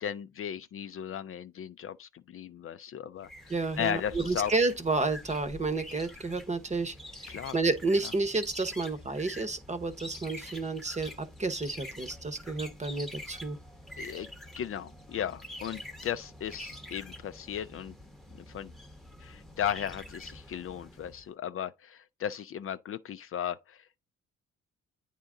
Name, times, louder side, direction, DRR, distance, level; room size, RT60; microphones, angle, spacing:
voice 1, 0.0-4.5 7.3-7.6 8.0-8.1 14.0-14.3 14.6-18.0 18.5-18.7 19.2-23.9, left 9 dB, 45° left, 0.4 m, -36 dB
sound 1, 3.2-21.2, left 1 dB, ahead, 0.9 m, -46 dB
voice 2, 3.5-6.9 7.2-13.6, right 3 dB, 25° right, 1.0 m, -30 dB
8.8 x 3.6 x 3.8 m
cardioid pair, 90°, 30 cm